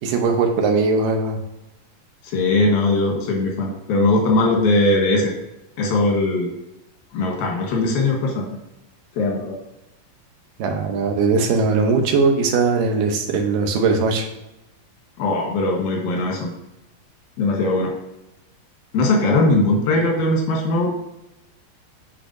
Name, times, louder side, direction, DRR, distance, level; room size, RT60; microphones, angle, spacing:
voice 1, 0.0-1.4 10.6-14.2, right 4 dB, 75° right, 3 dB, 2.4 m, -19 dB
voice 2, 2.2-5.3 5.8-6.5 7.1-8.5 9.2-9.5 15.2-16.5 17.4-17.9 18.9-20.9, left 2 dB, 90° left, 0 dB, 3.1 m, -20 dB
10.0 x 4.1 x 2.6 m, 0.92 s
omnidirectional pair, 4.1 m